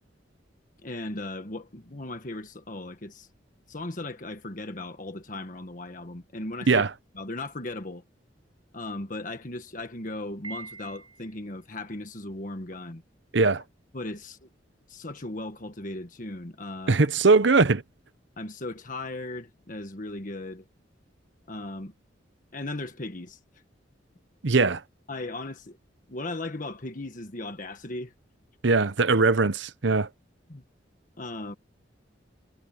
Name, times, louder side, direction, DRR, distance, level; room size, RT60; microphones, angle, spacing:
voice 1, 0.8-3.3 3.7-6.8 7.1-8.0 8.7-13.0 13.9-14.5 14.9-17.0 18.4-20.7 21.5-21.9 22.5-23.4 25.1-25.8 26.1-28.1 30.5-30.6 31.2-31.5, left 2 dB, 45° left, 1.6 m, -37 dB
Piano, 10.4-11.5, right 4 dB, 25° right, 7.1 m, -43 dB
voice 2, 16.9-17.8 24.4-24.8 28.6-30.1, right 3 dB, 70° right, 0.9 m, -20 dB
head